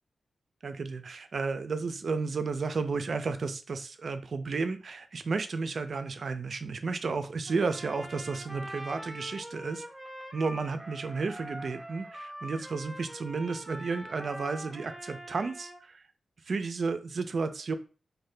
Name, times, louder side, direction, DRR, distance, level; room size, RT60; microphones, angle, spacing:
voice 1, 0.6-9.8 10.3-16.0 16.5-17.7, right 4 dB, 55° right, 10 dB, 0.4 m, -32 dB
Trumpet, 7.5-15.8, equal, 5° right, 0.6 m, -43 dB
2.7 x 2.1 x 3.2 m, 0.35 s
wide cardioid pair, 115°, 0 cm